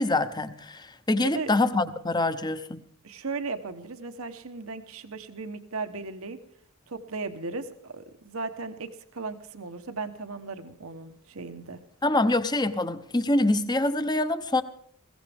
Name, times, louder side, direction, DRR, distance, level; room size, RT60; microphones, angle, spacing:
voice 1, 0.0-2.8 12.0-14.6, left 2 dB, 20° left, 11 dB, 0.8 m, -25 dB
voice 2, 3.0-6.4 6.9-11.8, right 3 dB, 70° right, 8 dB, 1.1 m, -36 dB
21.0 x 16.0 x 3.5 m, 0.66 s
head